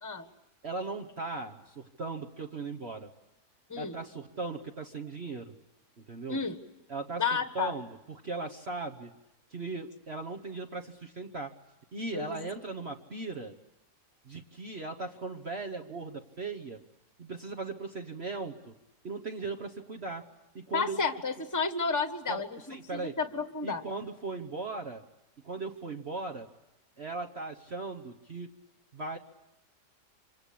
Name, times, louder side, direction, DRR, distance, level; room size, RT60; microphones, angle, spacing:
voice 1, 0.6-3.1 3.8-5.6 6.0-6.4 6.9-7.3 7.5-9.1 9.5-11.5 11.9-13.5 14.2-16.8 17.2-18.7 19.0-20.3 20.5-21.0 22.3-22.4 22.7-23.2 23.6-25.0 25.4-26.5 27.0-28.5 28.9-29.2, right 3 dB, 40° right, 3 dB, 1.4 m, -38 dB
voice 2, 7.2-7.7 12.1-12.4 20.7-23.8, left 4 dB, 10° left, 8 dB, 1.4 m, -31 dB
26.0 x 26.0 x 8.6 m, 0.93 s
omnidirectional pair, 1.8 m